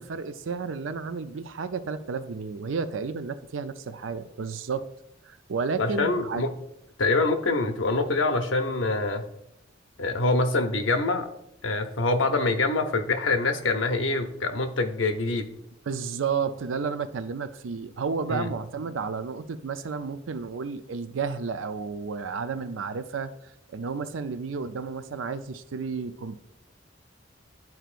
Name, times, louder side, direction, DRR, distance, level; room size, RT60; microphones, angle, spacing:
voice 1, 0.0-4.9 5.2-6.4 15.9-23.3 23.7-26.4, right 5 dB, 90° right, 12 dB, 0.5 m, -32 dB
voice 2, 5.8-6.5 7.0-9.3 10.0-11.3 11.6-15.5 18.3-18.5, left 3 dB, 80° left, 7 dB, 0.8 m, -25 dB
11.0 x 4.5 x 2.5 m, 0.80 s
head